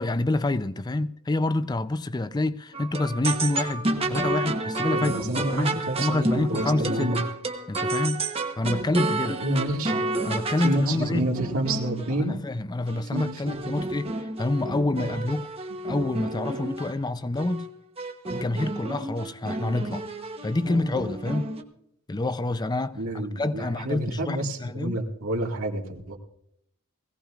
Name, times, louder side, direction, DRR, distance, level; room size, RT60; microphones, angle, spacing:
voice 1, 0.0-5.7 6.0-7.2 7.7-8.2 8.6-9.4 10.2-11.3 12.1-15.5 15.9-17.7 18.3-20.0 20.4-21.5 22.1-25.0, left 2 dB, 20° left, 0.4 m, -27 dB
sound 1, 2.7-12.2 12.9-16.9 17.4-17.7 18.0-21.6, right 2 dB, 25° right, 1.0 m, -30 dB
voice 2, 4.9-7.2 9.4-10.0 10.6-12.4 13.1-13.3 23.0-26.2, right 1 dB, 75° right, 2.1 m, -28 dB
21.0 x 16.5 x 2.4 m
head